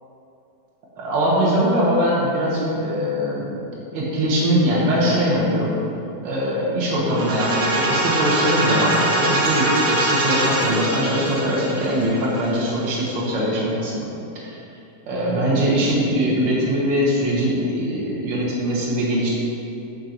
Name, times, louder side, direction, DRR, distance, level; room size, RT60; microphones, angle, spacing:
voice 1, 1.0-5.7 6.2-14.1 14.4-14.6 15.1-19.3, equal, 45° right, -5 dB, 1.7 m, -22 dB
sound 1, 7.1-12.9, right 1 dB, 85° right, 3.5 m, -22 dB
10.5 x 3.5 x 6.1 m, 2.7 s
omnidirectional pair, 4.2 m